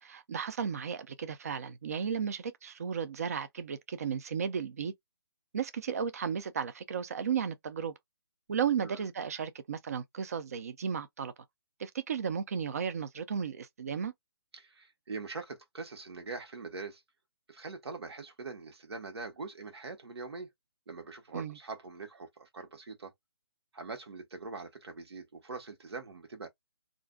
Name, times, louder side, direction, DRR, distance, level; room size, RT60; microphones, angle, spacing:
voice 1, 0.0-4.9 5.5-7.9 8.5-11.3 11.8-14.1 21.3-21.6, right 7 dB, 40° right, 0.4 m, -34 dB
voice 2, 14.5-17.0 17.5-20.5 20.9-23.1 23.7-26.5, right 4 dB, 90° right, 1.0 m, -43 dB
2.5 x 2.1 x 3.6 m
hypercardioid pair, 170°, 13 cm